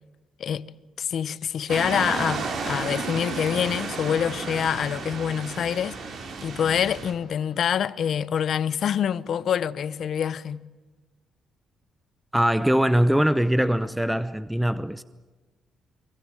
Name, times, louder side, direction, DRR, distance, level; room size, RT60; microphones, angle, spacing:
voice 1, 1.0-6.0 6.4-10.6, left 8 dB, 60° left, 0.9 m, -26 dB
sound 1, 1.7-7.1, right 4 dB, 65° right, 4.4 m, -32 dB
voice 2, 12.3-15.0, equal, 5° right, 0.8 m, -22 dB
24.0 x 23.0 x 9.0 m
cardioid pair, 90°, 0 cm